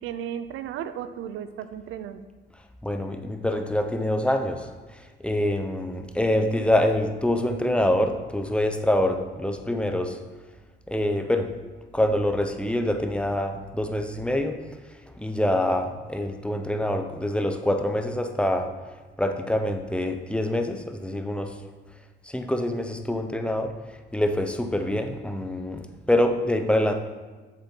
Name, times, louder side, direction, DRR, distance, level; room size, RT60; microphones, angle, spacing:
voice 1, 0.0-2.2 15.5-15.6, right 9 dB, 85° right, 12 dB, 0.5 m, -35 dB
voice 2, 2.8-4.7 5.2-10.2 10.9-11.5 11.9-14.6 15.2-18.7 19.2-21.5 22.3-23.7 24.1-26.9, left 1 dB, 5° left, 5 dB, 0.7 m, -25 dB
7.5 x 6.9 x 4.5 m, 1.3 s
cardioid pair, 90°, 20 cm